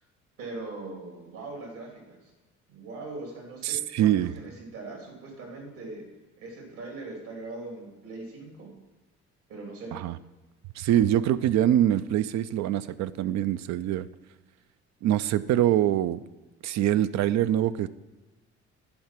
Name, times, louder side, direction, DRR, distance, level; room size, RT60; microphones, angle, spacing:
voice 1, 0.4-2.3 2.7-6.1 6.4-8.7 9.5-10.0, right 2 dB, 75° right, 0 dB, 2.9 m, -41 dB
voice 2, 3.6-4.4 9.9-10.2 10.8-14.1 15.0-16.2 16.6-17.9, right 11 dB, 60° right, 15 dB, 0.5 m, -24 dB
10.5 x 4.8 x 6.0 m, 1.2 s
hypercardioid pair, 60°, 32 cm